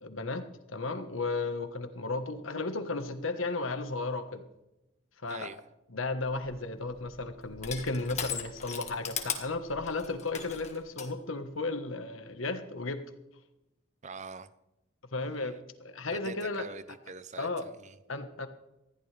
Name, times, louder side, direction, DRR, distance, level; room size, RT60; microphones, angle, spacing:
voice 1, 0.0-4.4 5.2-5.5 5.9-13.0 15.1-16.6 17.4-17.7 18.1-18.5, left 3 dB, 80° left, 9 dB, 1.4 m, -34 dB
voice 2, 5.3-5.6 14.0-14.5 15.3-15.5 16.1-18.0, right 4 dB, 35° right, 14 dB, 0.7 m, -44 dB
Crushing, 6.2-11.1, left 7 dB, 35° left, 1.7 m, -39 dB
20.0 x 14.5 x 3.4 m, 0.93 s
head